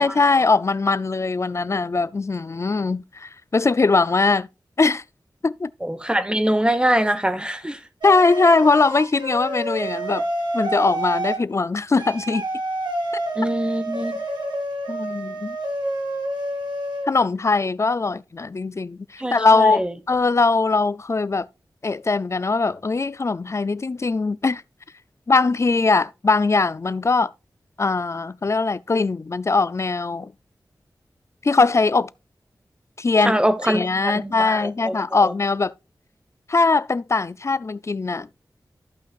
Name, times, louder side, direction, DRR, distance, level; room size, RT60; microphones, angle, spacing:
voice 1, 0.0-4.5 4.8-5.0 5.4-5.7 8.0-10.2 10.5-12.5 14.9-15.6 17.1-21.5 21.8-24.6 25.3-27.3 27.8-30.3 31.4-32.1 33.0-33.4 33.6-35.7 36.5-38.3, left 3 dB, 40° left, 0.4 m, -21 dB
voice 2, 5.8-7.8 13.3-14.2 19.2-19.9 33.2-34.9 35.2-35.3, right 1 dB, 10° right, 1.1 m, -23 dB
sound 1, 8.0-11.4 12.0-17.1, right 1 dB, 75° right, 2.5 m, -28 dB
15.0 x 5.6 x 2.4 m
wide cardioid pair, 85°, 8 cm